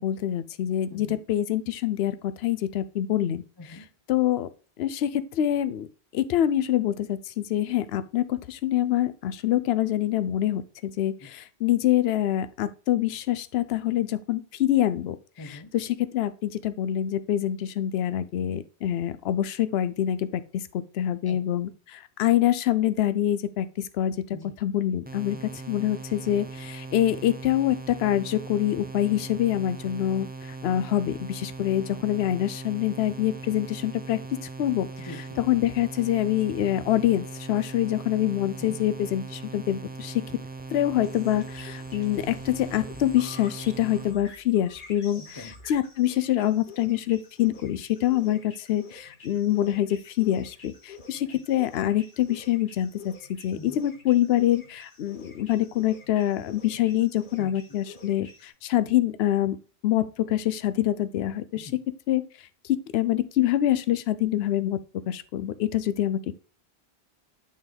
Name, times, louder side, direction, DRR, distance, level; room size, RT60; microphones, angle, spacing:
voice 1, 0.0-3.4 4.1-4.5 4.8-5.9 6.1-15.2 15.5-24.2 24.6-30.3 30.6-34.2 34.6-34.9 35.4-40.4 40.7-45.4 45.7-53.1 53.4-59.6 59.8-61.7 62.1-62.2 62.6-64.8 65.1-66.4, left 12 dB, 75° left, 14 dB, 0.8 m, -25 dB
voice 2, 15.4-15.7 21.3-21.4 24.3-24.5 25.3-25.5 35.0-35.4 38.6-38.8 40.3-40.4 45.1-45.6 51.3-51.4 53.6-53.8 57.4-57.8 61.5-61.8, left 2 dB, 25° left, 8 dB, 0.6 m, -44 dB
sound 1, 25.1-44.2, right 3 dB, 15° right, 0.3 m, -40 dB
sound 2, 41.0-58.5, left 4 dB, 50° left, 1.2 m, -48 dB
8.8 x 3.8 x 3.4 m, 0.35 s
omnidirectional pair, 1.1 m